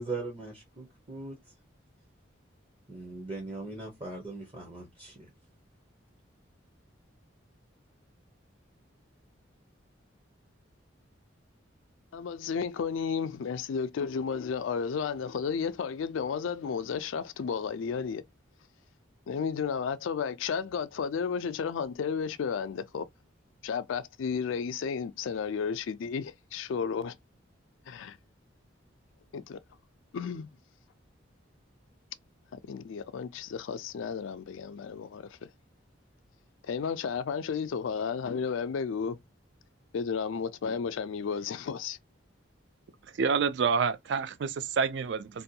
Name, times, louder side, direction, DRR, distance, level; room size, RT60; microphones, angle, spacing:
voice 1, 0.0-1.4 2.9-5.3, right 3 dB, 30° right, 0.7 m, -39 dB
voice 2, 12.1-18.2 19.3-23.1 23.6-27.1 27.9-28.2 29.3-29.6 30.1-30.5 32.5-35.4 36.7-39.2 39.9-42.0, left 6 dB, 75° left, 0.4 m, -33 dB
voice 3, 43.2-45.4, right 5 dB, 60° right, 0.3 m, -28 dB
2.6 x 2.2 x 2.7 m
head